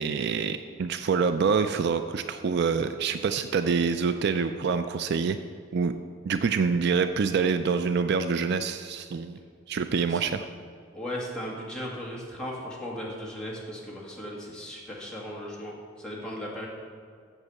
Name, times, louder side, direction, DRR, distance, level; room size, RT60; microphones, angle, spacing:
voice 1, 0.0-5.4 5.7-5.9 6.2-9.4 9.7-10.5, right 5 dB, 55° right, 9 dB, 0.4 m, -26 dB
voice 2, 10.9-16.7, equal, 5° left, -5 dB, 2.0 m, -37 dB
8.1 x 7.4 x 6.9 m, 2.2 s
head